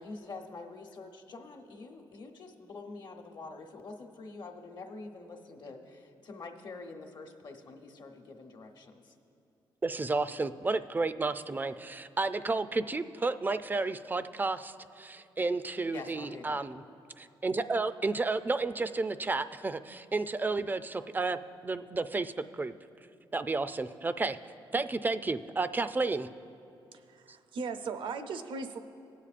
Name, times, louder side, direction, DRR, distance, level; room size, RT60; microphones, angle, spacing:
voice 1, 0.0-9.1 15.9-16.6, left 3 dB, 55° left, 2 dB, 1.0 m, -46 dB
voice 2, 9.8-16.8 17.2-22.7 23.3-24.4 24.7-26.3, right 3 dB, 20° right, 12 dB, 0.4 m, -32 dB
voice 3, 26.9-28.8, right 4 dB, 70° right, 8 dB, 0.6 m, -38 dB
19.5 x 8.4 x 2.5 m, 2.6 s
cardioid pair, 75°, 9 cm